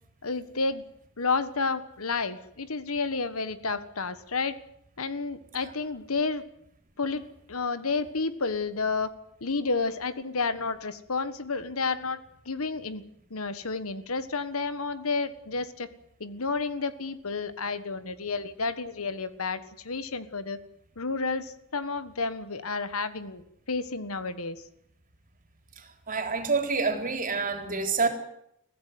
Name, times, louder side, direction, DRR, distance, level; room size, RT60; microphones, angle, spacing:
voice 1, 0.2-0.8 1.2-4.6 5.0-6.5 7.0-9.1 9.4-13.0 13.3-15.9 16.2-20.6 21.0-24.6, left 4 dB, 75° left, 13 dB, 1.5 m, -31 dB
voice 2, 26.1-28.1, right 4 dB, 40° right, 5 dB, 3.9 m, -27 dB
23.0 x 15.5 x 9.4 m, 0.75 s
head